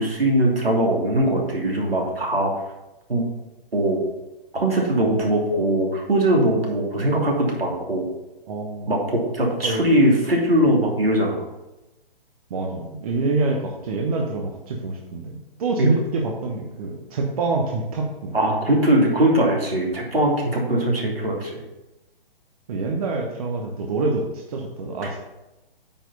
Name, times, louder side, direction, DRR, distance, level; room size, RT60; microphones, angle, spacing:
voice 1, 0.0-2.5 3.1-3.3 3.7-4.0 4.5-8.1 8.9-11.4 15.8-15.9 18.3-21.6, right 1 dB, 75° right, -2 dB, 2.9 m, -21 dB
voice 2, 8.5-8.9 9.6-9.9 12.5-18.3 22.7-25.2, right 3 dB, 40° right, 1 dB, 1.0 m, -26 dB
8.9 x 4.6 x 5.5 m, 0.99 s
figure-of-eight pair, 130°, 29 cm